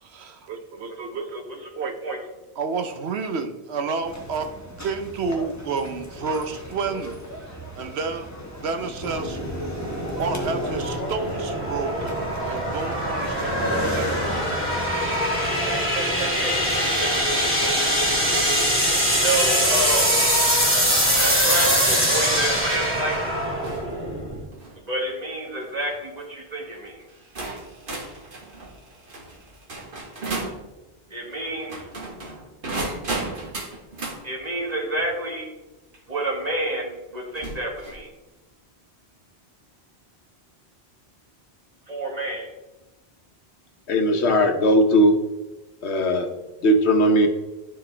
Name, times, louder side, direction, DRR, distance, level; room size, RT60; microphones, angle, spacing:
voice 1, 0.0-1.9 2.6-4.5 4.8-7.2 7.8-8.3 8.6-9.4 10.2-14.4 16.1-16.3, right 4 dB, 75° right, 8 dB, 1.0 m, -30 dB
voice 2, 0.9-2.2 15.4-16.8 17.4-17.5 19.0-20.2 21.2-23.2 24.8-27.1 31.1-32.4 34.2-35.5 36.1-38.1 41.9-42.5, right 1 dB, 40° right, 0 dB, 1.7 m, -30 dB
sound 1, 4.0-20.0, left 1 dB, 15° left, 1.1 m, -36 dB
sound 2, 9.0-24.4, equal, 10° right, 1.8 m, -23 dB
sound 3, 23.6-23.9 24.4-24.8 25.6-25.9 26.7-26.8 27.4-30.6 31.6-34.2 35.9-36.0 37.3-38.0, right 2 dB, 55° right, 1.5 m, -34 dB
voice 3, 43.9-45.1 45.8-46.3 46.6-47.3, equal, 85° left, 5 dB, 1.2 m, -18 dB
12.0 x 4.5 x 3.3 m, 1.1 s
omnidirectional pair, 1.1 m